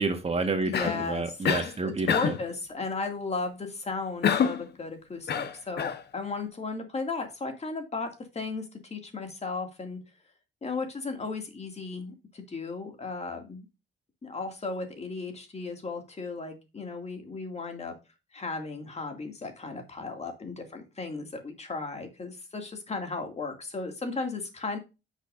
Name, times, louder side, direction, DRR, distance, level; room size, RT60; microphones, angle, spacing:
voice 1, 0.0-2.3, right 3 dB, 30° right, 7 dB, 1.5 m, -29 dB
Cough, 0.7-1.1 1.4-1.7 2.1-2.5 4.2-4.7 5.3-6.0, left 8 dB, 55° left, 1.0 m, -26 dB
voice 2, 0.7-1.4 1.8-10.0 10.6-13.7 14.2-17.9 18.3-24.8, left 3 dB, 35° left, 5 dB, 2.3 m, -35 dB
9.9 x 6.5 x 2.6 m, 0.27 s
cardioid pair, 90°, 20 cm